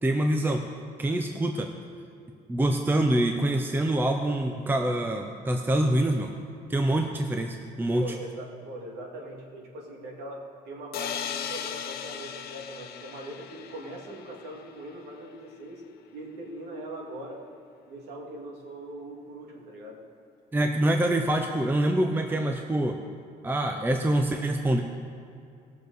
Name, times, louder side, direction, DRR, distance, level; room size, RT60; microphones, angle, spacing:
voice 1, 0.0-0.6 1.0-1.7 2.5-6.3 6.7-8.0 20.5-23.0 23.4-24.8, right 1 dB, 10° right, 4 dB, 0.7 m, -25 dB
voice 2, 8.0-15.8 16.1-17.4 17.9-20.0, right 1 dB, 75° right, -1 dB, 2.4 m, -41 dB
sound 1, 10.9-14.7, left 8 dB, 65° left, 1.0 m, -37 dB
19.5 x 6.7 x 4.1 m, 2.4 s
cardioid pair, 110°, 17 cm